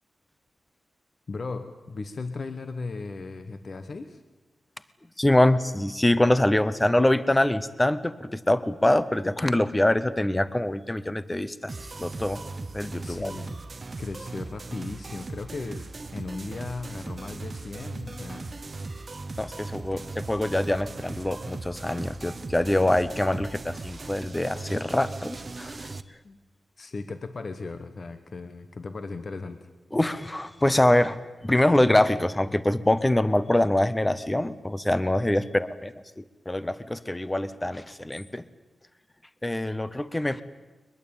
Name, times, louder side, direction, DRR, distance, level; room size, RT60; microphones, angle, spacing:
voice 1, 1.3-4.2 13.0-13.6 14.0-18.5 19.9-20.0 26.2-26.4 26.8-29.7, left 3 dB, 40° left, 9 dB, 1.1 m, -37 dB
voice 2, 5.2-12.4 12.7-13.3 19.4-25.9 29.9-31.2 31.4-38.4 39.4-40.4, left 1 dB, 10° left, 15 dB, 0.7 m, -24 dB
sound 1, 11.7-26.0, right 3 dB, 30° right, 0.9 m, -38 dB
22.5 x 21.5 x 8.9 m, 1.2 s
wide cardioid pair, 175°, 0 cm